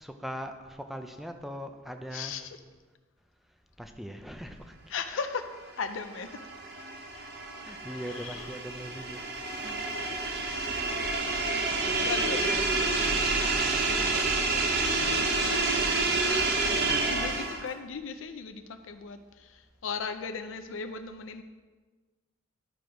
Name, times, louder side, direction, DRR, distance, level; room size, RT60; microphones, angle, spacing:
voice 1, 0.0-2.4 3.8-4.7 5.1-5.2 7.6-9.2 9.6-9.8, equal, ahead, 6 dB, 0.5 m, -40 dB
voice 2, 2.1-2.6 4.9-6.4 8.1-8.6 9.7-10.2 11.5-14.2 14.5-21.4, left 5 dB, 90° left, 8 dB, 0.6 m, -39 dB
sound 1, 5.8-17.7, right 3 dB, 55° right, 1.0 m, -28 dB
12.0 x 4.8 x 5.1 m, 1.3 s
head